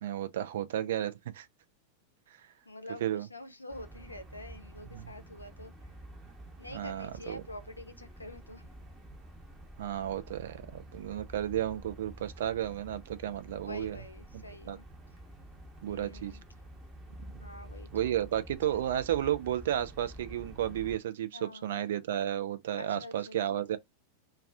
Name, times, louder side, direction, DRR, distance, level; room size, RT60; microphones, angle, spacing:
voice 1, 0.0-1.5 3.0-3.3 4.9-5.1 6.7-7.4 9.8-14.0 14.3-14.8 15.8-16.3 17.9-23.8, right 11 dB, 60° right, 0.4 m, -33 dB
voice 2, 2.7-5.7 6.6-8.6 13.6-14.9 15.9-16.4 17.4-18.2 18.7-18.8 21.3-21.8 22.8-23.7, left 1 dB, 85° left, 0.5 m, -46 dB
sound 1, 3.7-21.0, right 1 dB, 15° right, 0.9 m, -49 dB
2.3 x 2.3 x 3.2 m
figure-of-eight pair, 90°, 0 cm